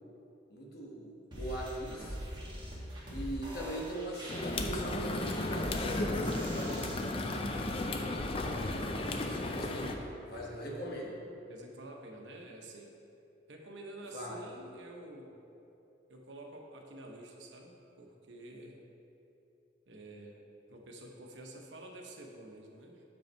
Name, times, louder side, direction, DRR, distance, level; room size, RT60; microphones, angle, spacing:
voice 1, 0.5-2.2 3.1-7.1 8.4-9.9 10.2-11.1 14.1-14.4, right 1 dB, 60° left, -2 dB, 1.2 m, -41 dB
sound 1, 1.3-6.9, equal, 25° right, 1.5 m, -42 dB
sound 2, 4.3-10.0, left 2 dB, 30° left, 0.4 m, -34 dB
voice 2, 10.3-10.8 11.5-12.9 13.5-15.4 16.1-18.8 19.9-20.4 20.7-23.0, right 1 dB, 85° right, 1 dB, 0.9 m, -49 dB
7.1 x 5.3 x 4.5 m, 2.8 s
head